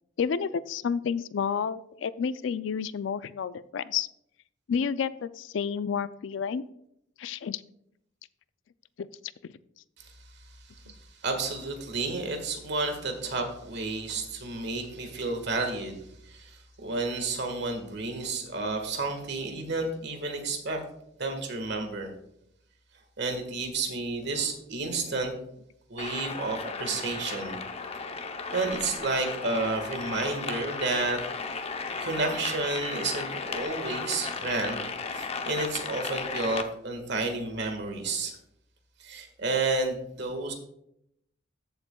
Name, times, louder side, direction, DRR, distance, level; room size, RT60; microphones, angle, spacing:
voice 1, 0.2-4.1 4.7-6.7 7.2-7.6 9.0-9.1 26.9-27.0, left 6 dB, 70° left, 16 dB, 0.4 m, -30 dB
voice 2, 11.2-20.8 21.2-22.1 23.2-25.3 25.9-27.6 28.5-31.2 32.0-38.3 39.0-40.5, right 3 dB, 65° right, 4 dB, 1.6 m, -31 dB
sound 1, 26.0-36.6, left 4 dB, 30° left, 0.7 m, -35 dB
14.0 x 7.0 x 2.3 m, 0.76 s
head